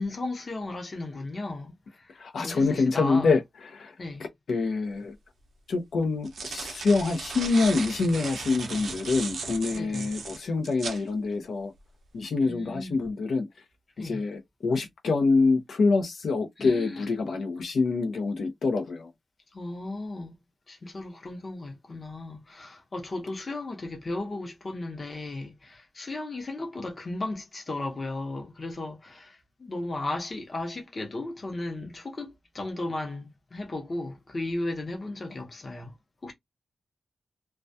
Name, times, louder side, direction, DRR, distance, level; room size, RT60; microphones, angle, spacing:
voice 1, 0.0-3.3 4.0-4.3 9.7-10.1 12.4-13.0 14.0-14.2 16.6-17.1 19.5-20.4 20.7-35.9 36.2-36.3, left 2 dB, 35° left, 0.7 m, -35 dB
voice 2, 2.2-3.4 3.7-3.9 4.5-5.1 5.7-11.7 12.1-13.5 14.0-19.1, left 4 dB, 75° left, 0.5 m, -26 dB
sound 1, 5.0-5.1 6.0-11.0, right 4 dB, 75° right, 0.5 m, -37 dB
2.2 x 2.2 x 2.6 m
wide cardioid pair, 155°, 0 cm